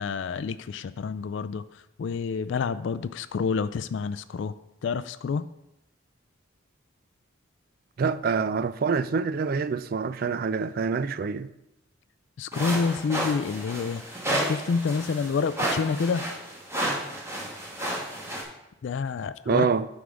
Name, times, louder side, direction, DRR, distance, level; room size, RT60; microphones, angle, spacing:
voice 1, 0.0-1.6 2.0-4.5 4.8-5.5 12.4-14.0 14.4-16.3 18.8-19.7, left 5 dB, 65° left, 0.3 m, -28 dB
voice 2, 8.0-11.5 19.5-19.9, right 5 dB, 45° right, 0.3 m, -26 dB
sound 1, 12.5-18.4, right 1 dB, 15° right, 1.4 m, -31 dB
9.6 x 3.5 x 6.3 m
head